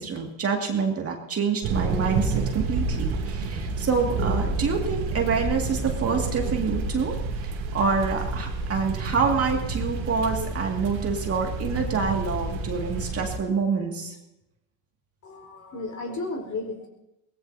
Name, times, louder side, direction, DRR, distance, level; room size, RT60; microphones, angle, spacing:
voice 1, 0.0-7.1 7.4-14.1, right 5 dB, 30° right, 2 dB, 2.2 m, -27 dB
sound 1, 1.6-13.4, right 3 dB, 80° right, 2.9 m, -29 dB
voice 2, 15.2-16.9, left 3 dB, 40° left, 3 dB, 4.4 m, -33 dB
23.0 x 19.0 x 2.8 m, 0.90 s
supercardioid pair, 110°, 44 cm